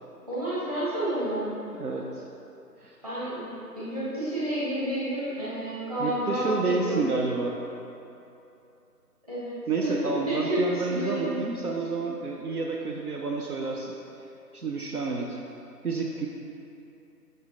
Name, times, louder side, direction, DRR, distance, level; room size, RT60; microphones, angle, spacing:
voice 1, 0.3-1.5 3.0-3.5 3.7-7.0 9.3-11.4, right 1 dB, 25° right, -12 dB, 1.5 m, -30 dB
voice 2, 1.7-2.2 2.8-3.0 6.0-7.6 9.7-13.9 14.5-15.4 15.8-16.3, right 4 dB, 65° right, 0 dB, 0.6 m, -29 dB
6.4 x 5.5 x 3.8 m, 2.8 s
figure-of-eight pair, 170°, 48 cm